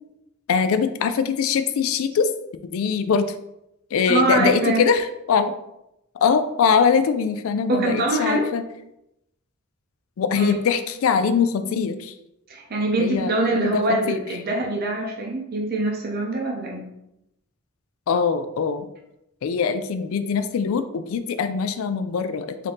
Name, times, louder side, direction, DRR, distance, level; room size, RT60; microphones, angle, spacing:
voice 1, 0.5-2.3 2.7-3.3 3.9-5.5 6.2-8.7 10.2-12.1 13.0-14.2 18.1-18.9 19.4-22.7, left 6 dB, 65° left, 10 dB, 0.3 m, -22 dB
voice 2, 4.1-4.8 7.7-8.5 10.4-10.6 12.5-16.9, right 2 dB, 45° right, -1 dB, 0.6 m, -23 dB
3.7 x 2.7 x 3.4 m, 0.84 s
head